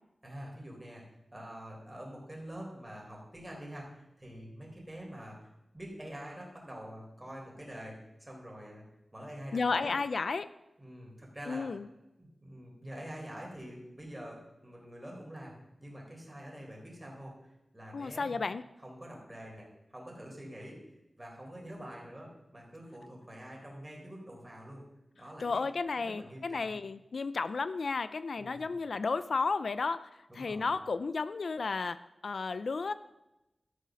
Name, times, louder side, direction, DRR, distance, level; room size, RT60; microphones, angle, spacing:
voice 1, 0.2-1.0 1.3-5.5 5.7-8.8 9.1-9.9 10.8-11.7 12.2-15.5 15.8-18.4 18.8-19.7 19.9-20.8 21.2-24.8 25.1-25.6 26.0-26.8 28.4-28.7 30.3-30.7, equal, 15° right, -2 dB, 4.0 m, -46 dB
voice 2, 9.5-10.5 11.5-11.9 17.9-18.6 25.4-32.9, left 4 dB, 75° left, 14 dB, 0.4 m, -33 dB
13.5 x 6.6 x 6.3 m, 0.93 s
wide cardioid pair, 95°, 0 cm